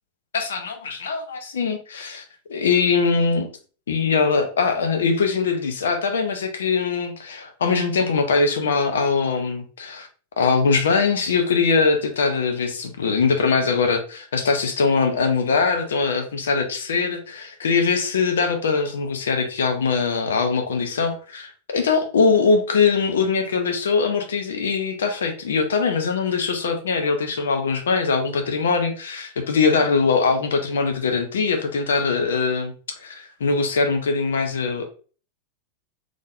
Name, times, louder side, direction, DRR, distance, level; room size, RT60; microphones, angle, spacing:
voice 1, 0.3-2.2 2.5-3.5 3.9-10.1 10.4-32.7 33.0-34.8, left 5 dB, 65° left, 5 dB, 0.7 m, -22 dB
3.7 x 3.3 x 2.6 m, 0.39 s
figure-of-eight pair, 90°, 0 cm